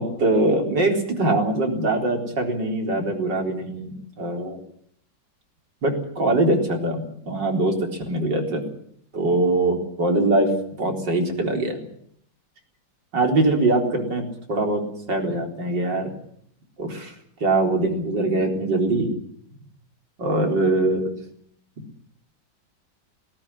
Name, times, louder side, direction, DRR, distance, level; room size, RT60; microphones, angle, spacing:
voice 1, 0.0-4.6 5.8-8.6 9.1-10.5 10.8-11.8 13.1-16.1 16.8-17.1 17.4-19.1 20.2-21.1, right 2 dB, 65° right, 3 dB, 4.7 m, -22 dB
18.5 x 18.5 x 10.0 m, 0.67 s
omnidirectional pair, 2.1 m